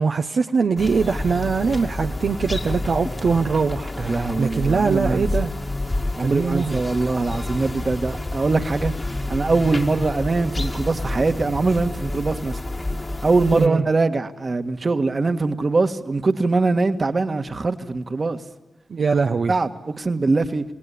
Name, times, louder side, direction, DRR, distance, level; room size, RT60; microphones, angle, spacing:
voice 1, 0.0-5.5 6.2-6.8 13.5-13.8 18.9-19.5, right 5 dB, 70° right, 1.0 m, -22 dB
sound 1, 0.8-13.7, left 2 dB, 35° left, 2.1 m, -29 dB
voice 2, 4.0-5.2 6.2-8.9 9.3-12.6 13.2-18.4 19.5-20.6, right 3 dB, 50° right, 1.8 m, -22 dB
29.0 x 18.0 x 8.5 m
cardioid pair, 45°, 0 cm